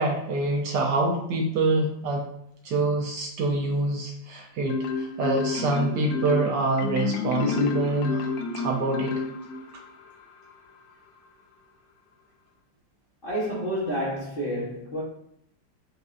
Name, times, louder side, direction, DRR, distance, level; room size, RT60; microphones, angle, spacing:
voice 1, 0.0-2.2 2.6-9.2, right 2 dB, 70° right, 1.1 m, -26 dB
Marimba xylophone, 4.7-9.8, left 4 dB, 80° left, 1.3 m, -29 dB
voice 2, 13.2-15.0, equal, 40° left, 0.9 m, -29 dB
6.2 x 2.5 x 2.4 m
omnidirectional pair, 2.1 m